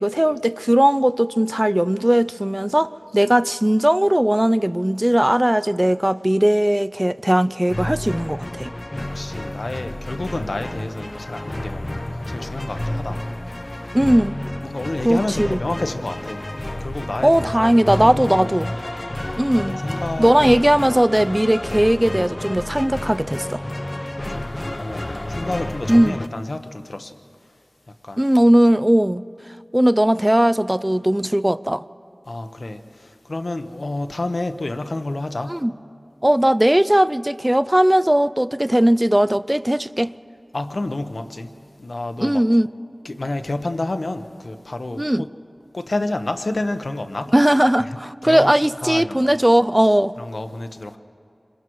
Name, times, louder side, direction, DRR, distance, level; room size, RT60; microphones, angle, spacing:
voice 1, 0.0-8.7 13.9-14.4 15.0-15.6 17.2-18.7 19.4-19.8 20.2-23.6 25.9-26.2 28.2-29.2 29.7-31.8 35.5-35.7 36.2-40.1 42.2-42.7 45.0-45.2 47.3-50.1, right 1 dB, 15° right, 0.4 m, -18 dB
sound 1, 7.7-26.3, left 1 dB, 30° left, 0.6 m, -30 dB
voice 2, 9.0-13.3 13.7-13.8 14.6-16.4 16.8-18.6 19.2-20.6 24.3-27.2 27.9-28.3 32.3-35.6 40.5-41.5 41.8-42.5 43.0-45.3 45.7-47.3 47.8-49.3 50.2-51.0, left 2 dB, 65° left, 0.9 m, -30 dB
26.5 x 21.5 x 4.7 m
wide cardioid pair, 60°, 0 cm